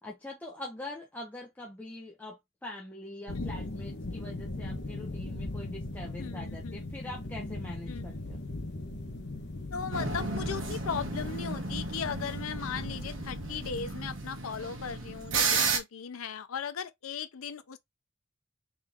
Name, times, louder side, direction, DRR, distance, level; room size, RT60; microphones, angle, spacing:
voice 1, 0.0-8.4, left 1 dB, 10° left, 0.8 m, -43 dB
voice 2, 3.3-3.7 6.2-7.1 7.9-8.3 9.7-17.8, left 6 dB, 80° left, 0.5 m, -38 dB
sound 1, 3.3-13.8, left 2 dB, 55° left, 1.0 m, -39 dB
sound 2, 9.9-15.8, right 4 dB, 65° right, 1.2 m, -33 dB
3.9 x 3.0 x 3.5 m
head